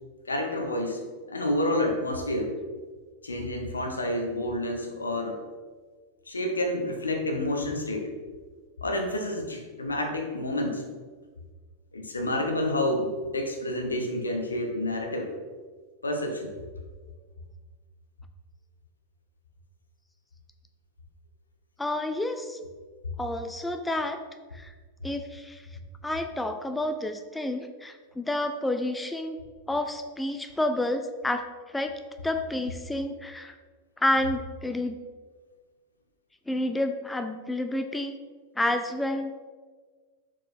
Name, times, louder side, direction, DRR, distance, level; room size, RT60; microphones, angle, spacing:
voice 1, 0.3-1.0 1.3-2.6 3.2-5.4 6.3-8.1 8.8-10.9 11.9-15.3 16.0-16.5, left 1 dB, 75° left, 3 dB, 1.0 m, -29 dB
voice 2, 21.8-22.6 23.2-24.2 24.5-24.7 25.0-25.6 26.0-29.4 29.7-31.5 31.7-31.9 32.2-33.5 34.0-35.0 36.5-38.2 38.6-39.3, left 1 dB, 5° left, 7 dB, 0.4 m, -29 dB
6.1 x 4.6 x 4.4 m, 1.5 s
figure-of-eight pair, 90°, 0 cm